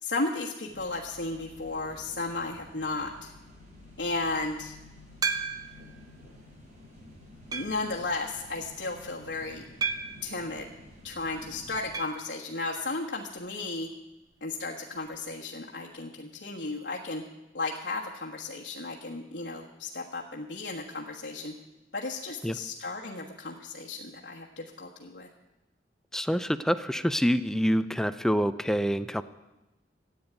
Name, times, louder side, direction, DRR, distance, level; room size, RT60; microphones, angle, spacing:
voice 1, 0.0-3.3 4.0-4.7 7.5-9.6 10.2-10.7 11.0-13.9 14.4-17.2 17.5-21.5 21.9-25.3, left 3 dB, 70° left, -3 dB, 1.4 m, -34 dB
sound 1, 0.7-11.9, left 1 dB, 40° right, 5.2 m, -51 dB
sound 2, 5.2-5.9 6.5-6.6 7.5-7.9 9.8-10.3 11.9-12.2 12.5-12.6 12.8-12.9 15.0-15.1, right 5 dB, 20° right, 1.0 m, -32 dB
voice 2, 26.1-29.2, equal, 5° left, 13 dB, 0.4 m, -26 dB
14.5 x 8.8 x 9.1 m, 1.0 s
head